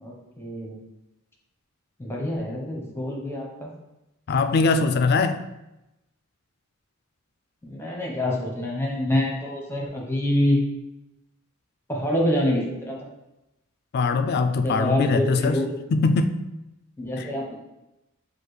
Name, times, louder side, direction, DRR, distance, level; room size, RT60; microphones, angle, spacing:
voice 1, 0.0-0.8 2.0-3.7 7.6-10.6 11.9-13.0 14.6-15.7 17.0-17.5, left 1 dB, 10° left, -2 dB, 0.8 m, -26 dB
voice 2, 4.3-5.4 13.9-15.6 15.9-16.4 17.2-17.3, left 4 dB, 50° left, 9 dB, 0.3 m, -22 dB
6.6 x 2.4 x 3.1 m, 0.93 s
head